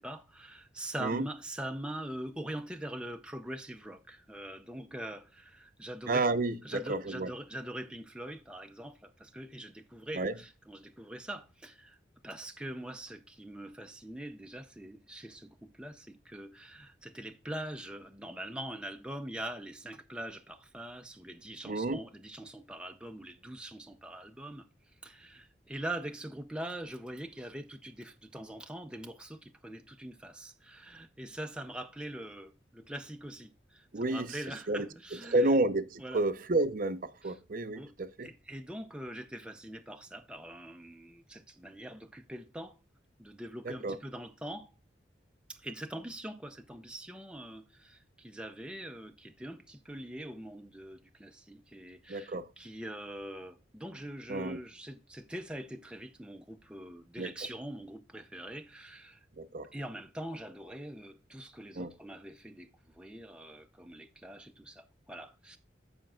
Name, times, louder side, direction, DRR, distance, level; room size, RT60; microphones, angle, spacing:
voice 1, 0.0-6.3 6.6-12.0 12.2-24.7 25.0-35.5 36.0-36.2 37.2-37.3 37.8-37.9 38.2-42.7 43.2-44.7 45.5-59.3 59.7-65.6, right 1 dB, 5° right, 0.5 m, -43 dB
voice 2, 6.1-7.3 10.1-10.4 21.7-22.0 33.9-34.4 34.7-34.9 35.3-38.3 43.6-44.0 52.1-52.5 54.3-54.6 57.2-57.3 59.4-59.7 61.8-61.9, right 2 dB, 50° right, 0.6 m, -30 dB
15.0 x 5.1 x 2.3 m
head